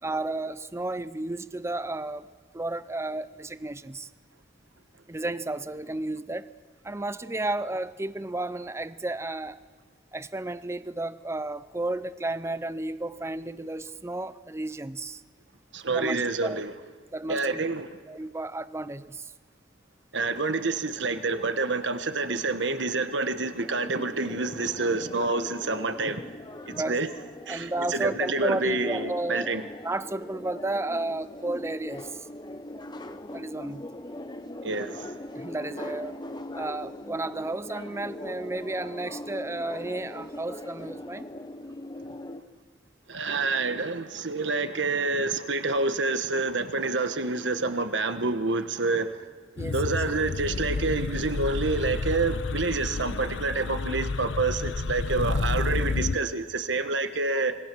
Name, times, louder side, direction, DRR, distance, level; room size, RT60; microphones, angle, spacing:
voice 1, 0.0-2.3 2.5-4.1 5.1-6.5 6.8-9.6 10.1-15.2 15.9-16.6 17.1-17.6 18.1-19.3 26.7-27.0 27.5-29.5 29.8-32.3 33.3-33.9 35.3-36.2 36.5-41.3 49.5-50.0, right 2 dB, 15° right, 14 dB, 0.6 m, -32 dB
voice 2, 15.7-16.7 17.3-17.9 20.1-26.2 26.7-27.1 27.5-29.6 34.6-35.2 43.1-49.3 49.7-57.6, right 3 dB, 70° right, 9 dB, 1.3 m, -28 dB
sound 1, 23.6-42.4, left 1 dB, 25° left, 0.9 m, -40 dB
sound 2, 49.6-56.2, left 3 dB, 75° left, 0.6 m, -30 dB
26.5 x 21.5 x 6.2 m, 1.5 s
head